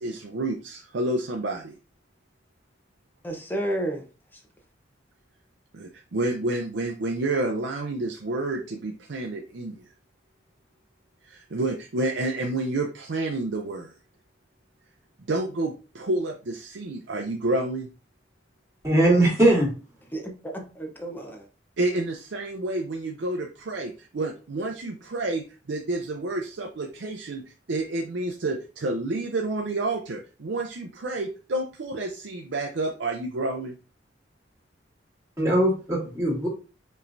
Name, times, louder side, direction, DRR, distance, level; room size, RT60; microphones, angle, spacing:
voice 1, 0.0-1.7 5.7-9.8 11.2-13.9 15.3-17.9 21.8-27.4 27.7-33.8, right 2 dB, 70° right, 3 dB, 0.5 m, -29 dB
voice 2, 3.2-4.0 4.3-4.4 20.1-21.5, right 1 dB, 10° left, 2 dB, 0.8 m, -31 dB
voice 3, 18.8-19.7 35.4-36.5, right 1 dB, 20° right, -6 dB, 2.2 m, -20 dB
5.3 x 3.1 x 2.6 m, 0.35 s
head